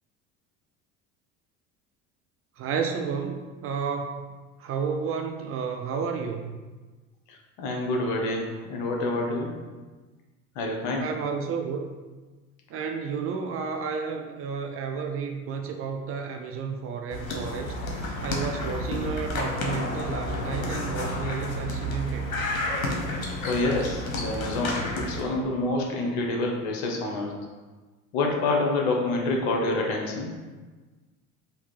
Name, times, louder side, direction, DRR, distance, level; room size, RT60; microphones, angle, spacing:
voice 1, 2.6-4.3 4.6-6.6 11.0-11.9 12.7-17.8 18.2-22.3, right 6 dB, 35° right, 4 dB, 0.4 m, -31 dB
voice 2, 7.3-9.6 10.5-11.1 23.1-27.3 28.1-30.3, left 2 dB, 65° left, 0 dB, 1.0 m, -27 dB
sound 1, 17.1-25.2, left 1 dB, 85° left, 0.9 m, -30 dB
3.6 x 2.8 x 4.5 m, 1.3 s
hypercardioid pair, 70°, 41 cm